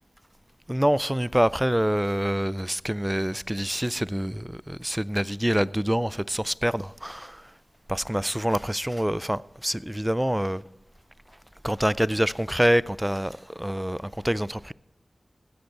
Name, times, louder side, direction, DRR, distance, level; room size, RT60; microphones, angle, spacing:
voice 1, 0.7-7.5 7.9-10.6 11.6-14.7, equal, 10° right, 0.4 m, -26 dB
16.5 x 8.0 x 4.6 m
cardioid pair, 40°, 0 cm